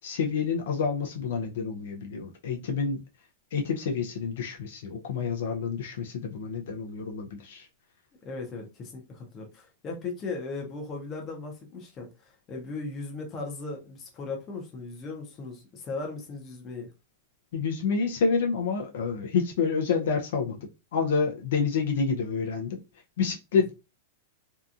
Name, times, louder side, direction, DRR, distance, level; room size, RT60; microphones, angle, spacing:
voice 1, 0.0-3.0 3.5-7.7 17.5-22.8 23.2-23.7, left 5 dB, 65° left, 0.5 m, -28 dB
voice 2, 8.2-16.9, left 3 dB, 20° left, 0.6 m, -37 dB
2.7 x 2.3 x 2.4 m
supercardioid pair, 165°, 0 cm